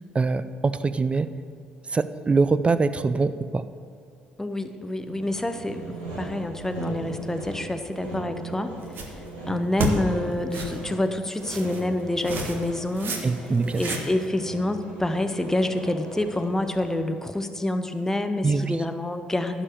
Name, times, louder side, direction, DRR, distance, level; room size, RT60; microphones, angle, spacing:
voice 1, 0.1-1.3 1.9-3.6 13.2-13.8 18.4-18.8, right 4 dB, 25° right, 13 dB, 0.5 m, -23 dB
voice 2, 4.4-8.7 9.0-9.2 9.5-13.2 13.8-19.6, left 1 dB, 10° left, 8 dB, 0.8 m, -27 dB
Sawing, 5.1-17.1, right 2 dB, 80° right, 2.6 m, -39 dB
sound 1, 8.8-9.3 9.8-9.9 10.5-10.8 11.4-11.8 12.2-12.7 13.0-13.2 13.5-14.3, right 2 dB, 55° right, 1.4 m, -30 dB
11.0 x 5.1 x 7.2 m, 2.4 s
hypercardioid pair, 55°, 4 cm